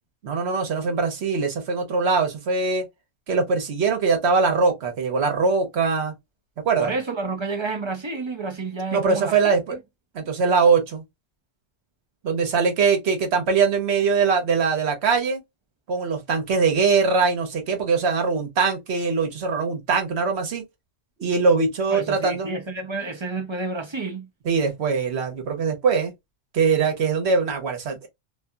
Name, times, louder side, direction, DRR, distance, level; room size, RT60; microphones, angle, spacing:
voice 1, 0.2-2.9 3.3-6.1 6.6-6.9 8.9-9.8 10.1-11.0 12.2-15.4 15.9-20.6 21.2-22.6 24.4-26.1 26.5-28.1, right 5 dB, 70° right, 1.1 m, -22 dB
voice 2, 6.8-9.8 21.9-24.3, right 3 dB, 40° right, 0.4 m, -30 dB
2.7 x 2.6 x 2.2 m
omnidirectional pair, 1.2 m